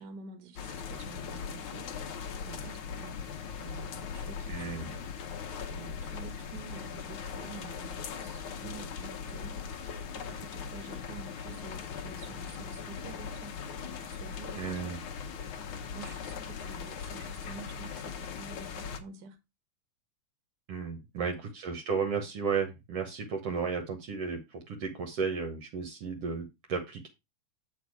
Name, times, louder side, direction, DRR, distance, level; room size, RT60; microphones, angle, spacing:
voice 1, 0.0-3.3 3.6-5.4 5.7-9.6 10.1-13.6 14.1-14.9 15.9-19.4 21.1-21.5, right 6 dB, 45° right, 1.5 m, -49 dB
sound 1, 0.6-19.0, left 6 dB, 65° left, 1.4 m, -40 dB
voice 2, 4.5-4.9 14.6-15.0 20.7-27.1, right 5 dB, 65° right, 1.8 m, -34 dB
8.1 x 4.5 x 4.7 m
omnidirectional pair, 3.4 m